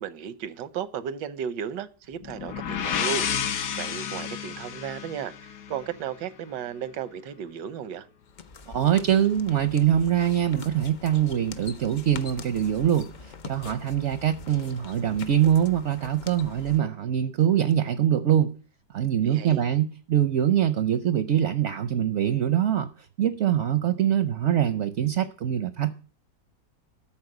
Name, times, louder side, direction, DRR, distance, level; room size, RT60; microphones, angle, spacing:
voice 1, 0.0-8.1 19.2-19.6, right 8 dB, 90° right, 1.4 m, -35 dB
sound 1, 2.2-6.1, left 8 dB, 60° left, 1.2 m, -31 dB
sound 2, 8.2-16.8, left 5 dB, 85° left, 0.4 m, -43 dB
voice 2, 8.7-18.5 18.9-22.9 23.2-25.9, right 10 dB, 65° right, 0.7 m, -23 dB
13.0 x 4.4 x 7.7 m
omnidirectional pair, 1.8 m